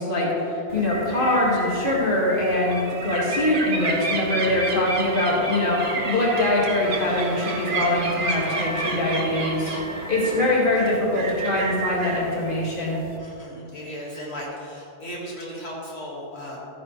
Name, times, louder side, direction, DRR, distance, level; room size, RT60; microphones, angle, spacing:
voice 1, 0.0-9.8 10.1-13.0, left 1 dB, 55° left, -4 dB, 2.1 m, -23 dB
sound 1, 0.7-13.2, right 3 dB, 55° right, 1.1 m, -31 dB
sound 2, 6.3-11.4, right 1 dB, 85° right, 1.7 m, -39 dB
voice 2, 13.2-16.6, equal, 75° left, -5 dB, 2.1 m, -36 dB
13.5 x 10.0 x 3.1 m, 2.7 s
omnidirectional pair, 1.1 m